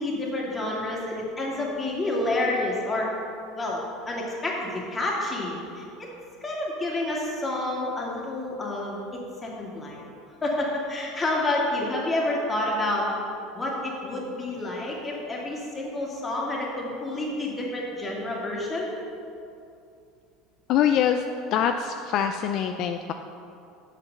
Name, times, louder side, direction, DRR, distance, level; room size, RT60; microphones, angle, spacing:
voice 1, 0.0-3.1 3.5-6.1 6.4-10.0 10.4-13.1 13.5-18.9, left 2 dB, 20° left, -3 dB, 2.2 m, -29 dB
voice 2, 20.7-21.2 21.5-23.1, left 9 dB, 55° left, 6 dB, 0.4 m, -24 dB
7.9 x 5.8 x 6.6 m, 2.6 s
supercardioid pair, 120°, 0 cm